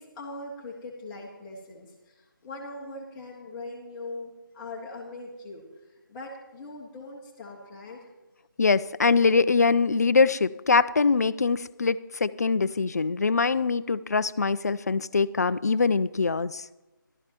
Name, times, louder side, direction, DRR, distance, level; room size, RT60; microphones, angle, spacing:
voice 1, 0.0-1.9 2.4-5.6 5.9-8.1, left 2 dB, 10° left, -3 dB, 1.4 m, -41 dB
voice 2, 8.6-16.6, left 4 dB, 50° left, 15 dB, 0.4 m, -23 dB
16.0 x 13.0 x 3.0 m, 1.1 s
figure-of-eight pair, 160°, 12 cm